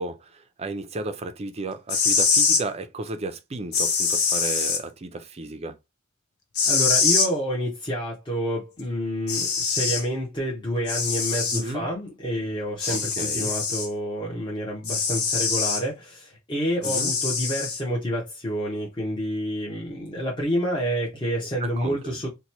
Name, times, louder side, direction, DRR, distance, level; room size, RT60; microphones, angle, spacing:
voice 1, 0.0-5.8 11.5-11.9 12.9-13.5 16.8-17.1 21.6-22.2, right 2 dB, 30° right, 0.4 m, -33 dB
sound 1, 1.8-2.6 3.7-4.8 6.6-7.3 8.8-8.9 9.3-10.0 10.9-11.6 12.8-13.9 14.8-15.8 16.8-17.8, left 5 dB, 90° left, 0.8 m, -23 dB
voice 2, 6.7-22.3, equal, 20° left, 0.8 m, -28 dB
3.0 x 2.2 x 4.1 m
head